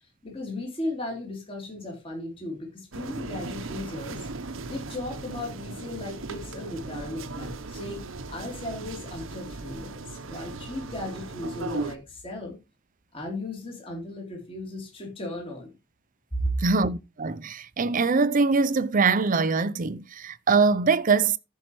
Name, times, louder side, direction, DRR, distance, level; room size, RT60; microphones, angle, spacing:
voice 1, 0.2-4.2 4.7-8.0 8.3-12.6 13.1-15.7 16.3-16.6, left 1 dB, 30° left, 3.3 m, -35 dB
sound 1, 2.9-12.0, right 3 dB, 80° right, 0.9 m, -37 dB
voice 2, 16.6-21.4, right 4 dB, 45° right, 0.6 m, -23 dB
14.5 x 5.6 x 3.1 m
head